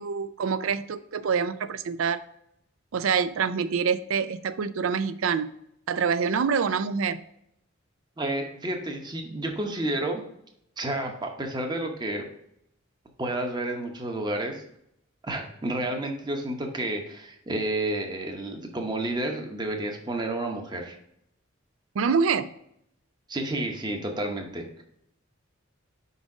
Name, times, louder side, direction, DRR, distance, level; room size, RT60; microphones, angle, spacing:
voice 1, 0.0-2.2 2.9-5.5 5.9-7.2 22.0-22.5, right 6 dB, 80° right, 13 dB, 0.4 m, -26 dB
voice 2, 8.2-10.2 10.8-12.2 13.2-14.6 15.2-21.0 23.3-24.6, right 1 dB, 20° right, 3 dB, 0.8 m, -30 dB
5.0 x 4.1 x 4.8 m, 0.75 s
head